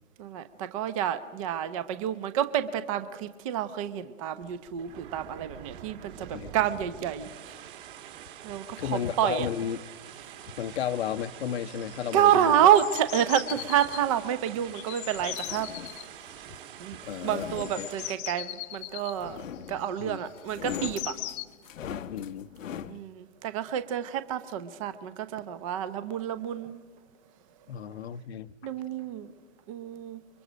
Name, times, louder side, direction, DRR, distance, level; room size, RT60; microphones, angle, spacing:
voice 1, 0.2-7.5 8.4-9.5 12.1-15.7 16.8-19.4 19.7-21.2 22.9-26.8 28.6-29.3 29.7-30.2, right 10 dB, 25° right, 12 dB, 0.7 m, -28 dB
sound 1, 4.3-18.1, right 10 dB, 40° right, 2.6 m, -46 dB
voice 2, 8.8-9.8 10.6-12.6 17.1-17.9 20.0-20.2 22.1-22.5 27.7-28.5, left 9 dB, 50° left, 15 dB, 0.8 m, -33 dB
sound 2, 10.2-10.3 10.4-10.8 11.1-11.5 11.7-14.0 14.7-16.1 17.1-21.5, left 15 dB, 20° left, 0.9 m, -39 dB
sound 3, 15.3-16.1 17.0-18.3 19.2-20.0 20.4-23.0, left 8 dB, 70° left, 0.9 m, -40 dB
29.5 x 23.0 x 5.1 m, 1.5 s
hypercardioid pair, 155°, 40 cm